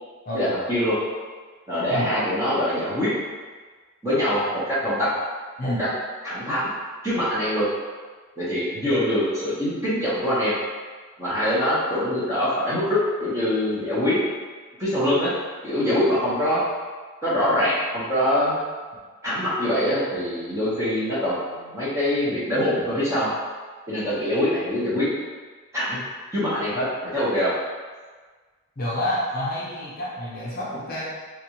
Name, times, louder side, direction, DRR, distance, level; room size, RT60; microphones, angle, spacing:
voice 1, 0.3-0.9 1.7-3.1 4.0-4.4 4.7-5.1 5.6-5.9 6.2-6.7 7.0-7.7 8.4-10.5 11.2-14.2 14.8-15.3 15.6-16.6 17.2-18.5 19.2-23.3 23.9-25.1 25.7-26.0 26.3-26.9 27.1-27.5, left 1 dB, 15° right, -11 dB, 1.1 m, -23 dB
voice 2, 28.8-31.0, left 1 dB, 45° left, -7 dB, 0.7 m, -28 dB
3.3 x 2.6 x 3.0 m, 1.4 s
head